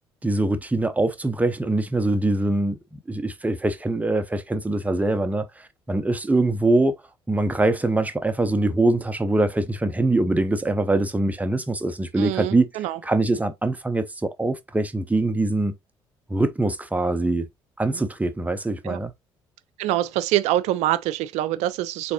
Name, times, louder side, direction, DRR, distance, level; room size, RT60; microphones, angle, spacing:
voice 1, 0.2-2.8 3.1-7.0 7.3-12.7 13.0-15.7 16.3-17.5 17.8-19.1, right 2 dB, 10° right, 0.7 m, -23 dB
voice 2, 12.2-13.0 17.9-18.0 18.8-19.0 19.8-22.1, right 14 dB, 60° right, 0.4 m, -25 dB
4.0 x 3.2 x 2.8 m
figure-of-eight pair, 50°, 13 cm